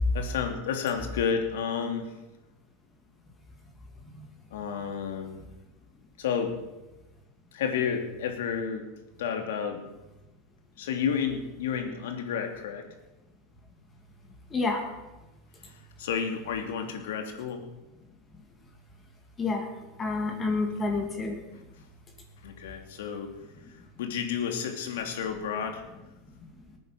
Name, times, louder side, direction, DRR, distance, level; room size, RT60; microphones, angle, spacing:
voice 1, 0.1-2.1 4.5-5.4 6.2-6.5 7.5-8.8 9.2-9.9 10.8-12.8 15.7-17.6 20.5-20.6 22.4-23.3 24.0-25.8, left 7 dB, 85° left, 4 dB, 3.0 m, -31 dB
voice 2, 14.5-14.9 19.4-19.7 20.0-21.4, left 3 dB, 20° left, 2 dB, 2.5 m, -29 dB
19.0 x 9.4 x 6.9 m, 1.0 s
supercardioid pair, 140°, 0 cm